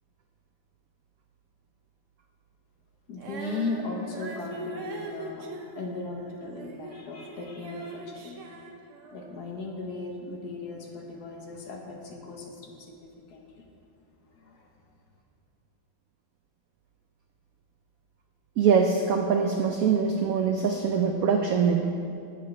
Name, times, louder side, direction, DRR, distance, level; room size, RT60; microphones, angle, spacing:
voice 1, 3.1-5.5 5.8-8.4 9.1-13.4 14.2-14.7, left 3 dB, 60° left, 1 dB, 1.4 m, -37 dB
Female singing, 3.2-7.0 7.3-9.4, right 3 dB, 55° right, 0.9 m, -41 dB
voice 2, 18.6-21.8, right 6 dB, 85° right, 4 dB, 0.7 m, -23 dB
10.5 x 8.4 x 3.2 m, 2.6 s
omnidirectional pair, 2.1 m